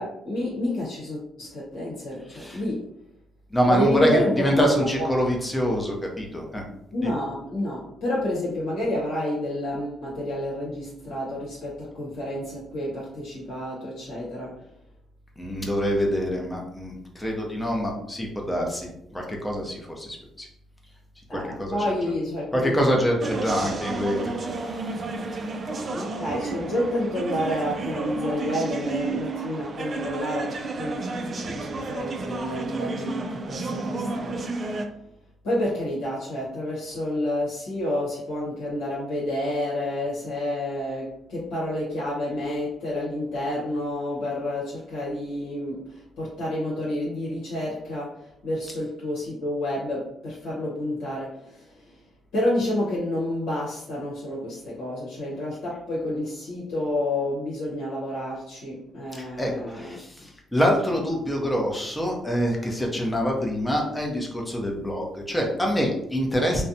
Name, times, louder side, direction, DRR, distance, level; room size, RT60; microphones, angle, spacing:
voice 1, 0.0-2.9 3.7-5.1 6.9-14.7 21.3-22.8 23.5-23.8 25.8-34.7 35.4-52.0 52.3-60.0, left 1 dB, 90° left, -7 dB, 0.9 m, -29 dB
voice 2, 2.3-2.6 3.5-6.6 7.0-7.1 15.4-20.5 21.3-21.9 22.5-25.4 59.1-66.6, equal, 10° left, 0 dB, 0.6 m, -26 dB
sound 1, 23.2-34.8, right 3 dB, 45° right, 0.3 m, -32 dB
2.5 x 2.1 x 2.6 m, 0.75 s
cardioid pair, 90°, 0 cm